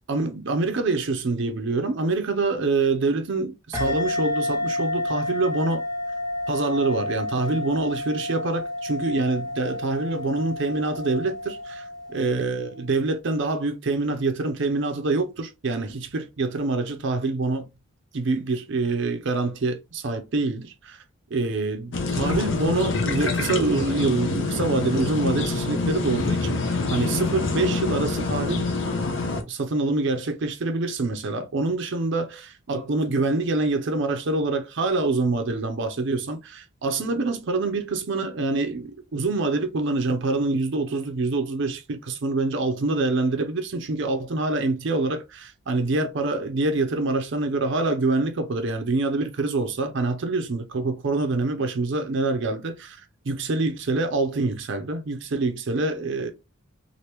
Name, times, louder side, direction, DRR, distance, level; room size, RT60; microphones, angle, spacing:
voice 1, 0.1-5.8 6.5-17.7 18.1-21.0 21.3-28.9 29.5-56.3, right 3 dB, 60° right, 0.5 m, -26 dB
sound 1, 3.7-12.8, left 1 dB, 15° right, 0.8 m, -30 dB
sound 2, 21.9-29.4, left 3 dB, 60° left, 0.6 m, -26 dB
2.9 x 2.5 x 3.3 m
head